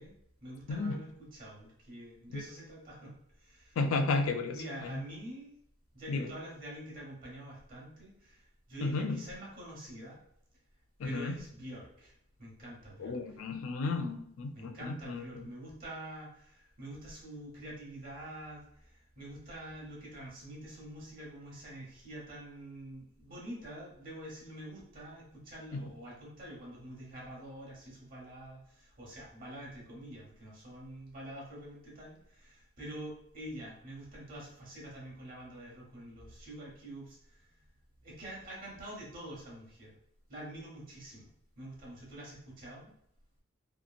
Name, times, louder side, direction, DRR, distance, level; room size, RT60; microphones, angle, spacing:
voice 1, 0.0-3.8 4.2-5.5 5.9-10.2 11.0-13.4 14.5-37.6 38.0-40.0 40.3-41.3 41.6-42.9, right 1 dB, 45° right, -4 dB, 0.9 m, -46 dB
voice 2, 0.7-1.0 2.3-2.4 3.8-4.6 4.9-5.0 6.1-6.3 8.8-9.2 11.0-11.4 13.0-15.4 25.7-25.9, left 3 dB, 90° left, 7 dB, 0.4 m, -33 dB
2.9 x 2.5 x 2.4 m, 0.69 s
head